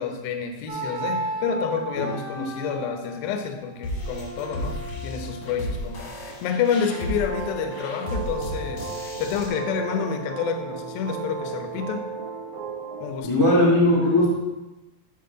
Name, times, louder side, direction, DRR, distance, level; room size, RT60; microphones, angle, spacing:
voice 1, 0.0-12.1 13.0-13.3, left 6 dB, 75° left, 5 dB, 2.2 m, -29 dB
sound 1, 0.7-6.5, right 2 dB, 65° right, 2.6 m, -35 dB
sound 2, 3.8-9.5, left 1 dB, 50° left, 1.9 m, -34 dB
sound 3, 6.9-13.2, right 5 dB, 80° right, 1.6 m, -34 dB
voice 2, 13.2-14.3, left 1 dB, 10° left, -7 dB, 1.9 m, -18 dB
12.5 x 4.6 x 3.8 m, 1.0 s
omnidirectional pair, 5.2 m